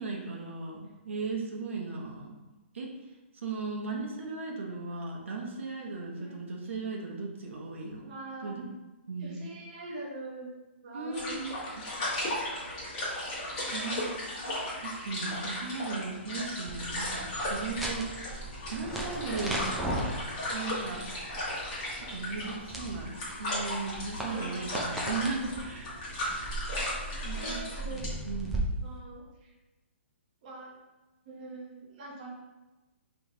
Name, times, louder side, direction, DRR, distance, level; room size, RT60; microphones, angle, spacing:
voice 1, 0.0-2.4 2.7-2.9 3.3-8.1 8.4-8.6 9.1-9.4 10.9-11.9 13.7-14.1 14.5-14.6 14.8-18.1 18.7-20.1 20.5-21.0 21.9-23.1 23.4-25.9 27.2-28.6, right 4 dB, 80° right, -1 dB, 0.9 m, -37 dB
voice 2, 8.0-8.5 9.2-10.5 10.8-11.4 11.7-12.0 13.5-13.9 22.3-22.4 24.2-24.7 25.5-25.7 26.7-28.0 28.8-29.5 30.4-30.7 31.2-32.3, right 2 dB, 35° right, -3 dB, 0.9 m, -44 dB
sound 1, 11.1-28.1, left 1 dB, 25° left, 1.3 m, -36 dB
sound 2, 16.7-28.6, right 1 dB, ahead, 0.3 m, -38 dB
4.9 x 3.2 x 2.7 m, 1.1 s
hypercardioid pair, 170°, 7 cm